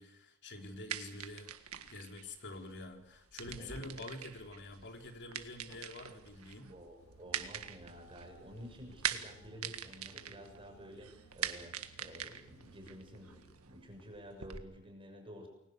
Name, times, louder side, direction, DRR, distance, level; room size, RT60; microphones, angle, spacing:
voice 1, 0.0-1.5 1.9-6.7, left 2 dB, 55° left, 4 dB, 4.1 m, -47 dB
sound 1, 0.6-14.6, right 9 dB, 75° right, 1.8 m, -44 dB
voice 2, 3.6-3.9 6.1-6.2 6.7-15.5, equal, 25° right, 3 dB, 6.4 m, -51 dB
sound 2, 7.0-13.6, right 3 dB, 85° left, 3.6 m, -62 dB
29.5 x 21.5 x 6.7 m, 0.79 s
head